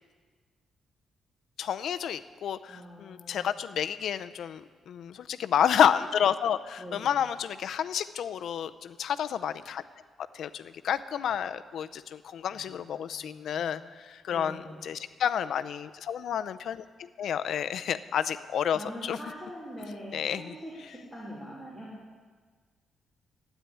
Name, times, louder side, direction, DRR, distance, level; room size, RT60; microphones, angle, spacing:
voice 1, 1.6-9.8 10.3-13.8 14.1-19.2 20.1-20.5, left 9 dB, 65° left, 12 dB, 0.6 m, -30 dB
voice 2, 2.7-3.5 6.8-7.2 12.5-13.9 14.3-14.9 18.7-21.9, equal, 5° right, -7 dB, 3.1 m, -44 dB
12.5 x 9.3 x 9.7 m, 1.5 s
wide cardioid pair, 165°, 0 cm